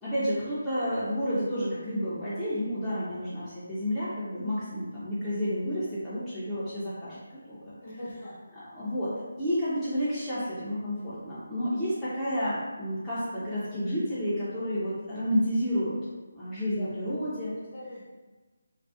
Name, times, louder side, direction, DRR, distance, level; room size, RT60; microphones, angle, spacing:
voice 1, 0.0-7.8 8.7-9.1 9.4-16.0 16.3-17.5, equal, 5° left, -14 dB, 0.4 m, -30 dB
voice 2, 7.8-8.4 16.6-18.0, left 1 dB, 40° left, -7 dB, 0.7 m, -43 dB
2.4 x 2.2 x 2.3 m, 1.2 s
figure-of-eight pair, 150°, 0 cm